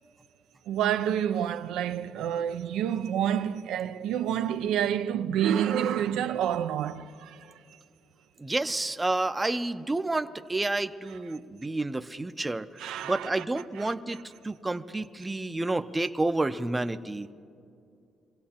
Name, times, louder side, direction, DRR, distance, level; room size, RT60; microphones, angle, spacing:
voice 1, 0.7-7.5 12.8-13.4 13.8-13.9, right 9 dB, 90° right, 0.4 m, -28 dB
voice 2, 8.4-14.2 14.4-17.3, right 2 dB, 15° right, 0.5 m, -30 dB
24.0 x 16.5 x 2.9 m
cardioid pair, 90°, 0 cm